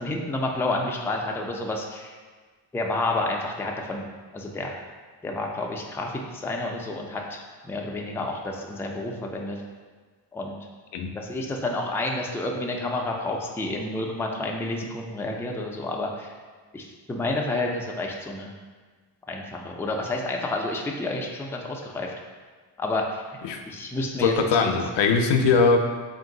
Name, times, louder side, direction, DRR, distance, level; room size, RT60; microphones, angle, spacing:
voice 1, 0.0-2.2 2.7-4.1 4.3-4.8 5.2-9.6 10.3-10.6 11.1-16.3 16.7-18.5 19.3-22.1 22.8-23.2 23.7-24.7, left 2 dB, 5° left, 0 dB, 0.3 m, -30 dB
voice 2, 24.2-25.8, left 4 dB, 80° left, 4 dB, 0.5 m, -20 dB
3.8 x 2.6 x 3.8 m, 1.5 s
cardioid pair, 105°, 42 cm